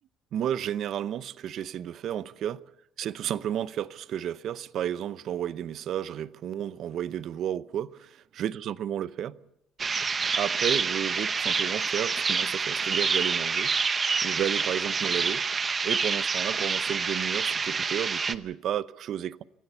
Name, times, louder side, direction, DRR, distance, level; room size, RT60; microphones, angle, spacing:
voice 1, 0.3-2.6 3.0-9.4 10.4-13.7 14.2-15.4 15.8-19.4, right 10 dB, 55° right, 0.8 m, -32 dB
sound 1, 9.8-18.3, right 5 dB, 30° right, 0.9 m, -27 dB
26.5 x 16.0 x 6.9 m
cardioid pair, 135°, 0 cm